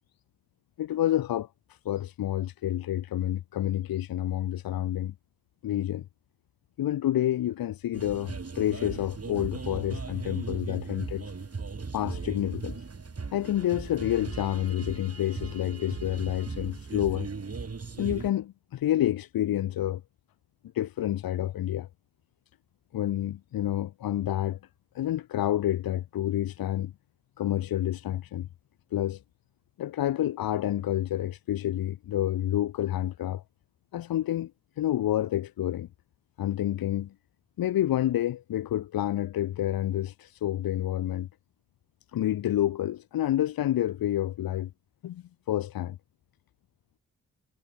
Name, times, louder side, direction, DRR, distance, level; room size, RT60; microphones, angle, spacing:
voice 1, 0.8-5.1 5.6-6.1 6.8-11.3 11.9-12.8 13.3-17.3 18.0-20.0 20.7-21.9 22.9-24.6 25.0-26.9 27.4-28.5 28.9-29.2 29.8-33.4 33.9-34.5 34.8-35.9 36.4-37.1 37.6-41.3 42.1-44.7 45.0-46.0, left 12 dB, 90° left, 1.7 m, -29 dB
sound 1, 7.9-18.3, right 4 dB, 45° right, 4.0 m, -38 dB
supercardioid pair, 40°, 34 cm